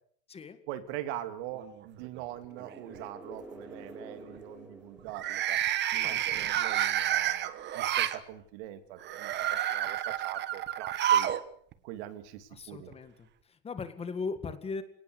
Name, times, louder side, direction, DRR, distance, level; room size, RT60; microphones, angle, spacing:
voice 1, 0.7-5.6 5.9-11.3 11.8-12.9, right 13 dB, 75° right, 10 dB, 2.9 m, -42 dB
sound 1, 1.6-2.2 2.6-3.0 5.1-8.2 9.0-11.4 11.7-11.8 12.9-13.0, right 11 dB, 30° right, 1.4 m, -29 dB
sound 2, 2.4-6.2, right 1 dB, 5° right, 3.7 m, -49 dB
voice 2, 6.0-6.4 12.5-14.8, left 4 dB, 20° left, 10 dB, 1.9 m, -39 dB
28.0 x 19.0 x 8.0 m, 0.64 s
cardioid pair, 160°, 33 cm